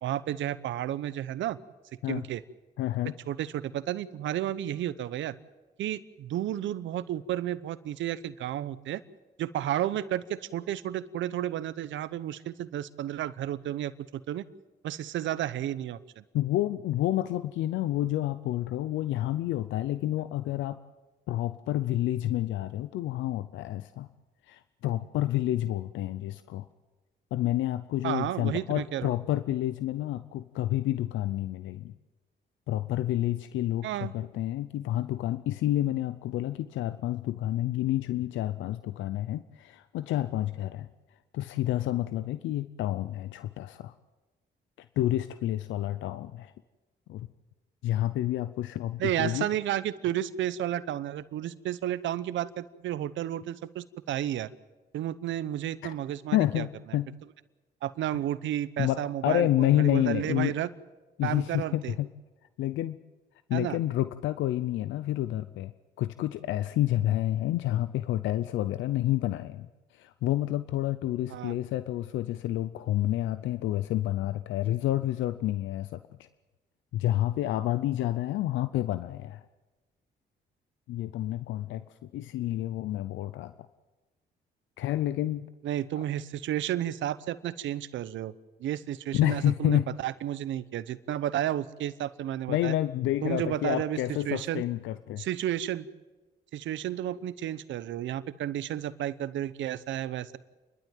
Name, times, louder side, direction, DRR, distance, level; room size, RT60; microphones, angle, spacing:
voice 1, 0.0-1.6 2.1-2.4 3.3-5.3 5.8-9.0 9.4-14.4 14.8-16.2 28.0-29.1 33.8-34.1 49.0-54.5 54.9-56.6 57.8-60.7 61.2-61.9 63.5-63.8 71.3-71.5 85.6-88.3 88.6-92.7 93.2-94.0 94.3-94.6 95.2-95.9 96.5-100.4, right 12 dB, 85° right, 15 dB, 0.9 m, -32 dB
voice 2, 2.8-3.1 16.3-20.8 21.3-24.1 24.5-26.7 27.3-31.9 32.7-40.9 41.3-43.9 44.8-46.5 47.1-47.3 47.8-49.5 55.8-55.9 56.3-57.1 58.8-60.6 61.2-62.1 62.6-63.0 63.5-65.7 66.0-69.7 69.9-76.0 76.9-79.4 80.9-83.5 84.8-85.5 89.1-89.9 92.5-95.2, left 14 dB, 90° left, 13 dB, 0.6 m, -29 dB
29.0 x 12.0 x 9.2 m, 1.2 s
supercardioid pair, 60°, 19 cm